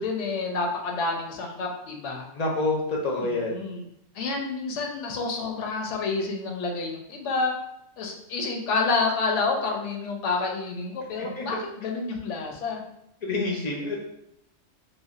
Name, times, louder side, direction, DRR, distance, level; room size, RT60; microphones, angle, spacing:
voice 1, 0.0-2.3 3.2-3.8 4.1-7.6 8.0-12.8, left 3 dB, 90° left, 2 dB, 0.9 m, -29 dB
voice 2, 2.4-3.6 11.2-11.4 13.2-14.0, left 2 dB, 55° left, -1 dB, 0.4 m, -27 dB
3.2 x 2.3 x 2.4 m, 0.79 s
omnidirectional pair, 1.2 m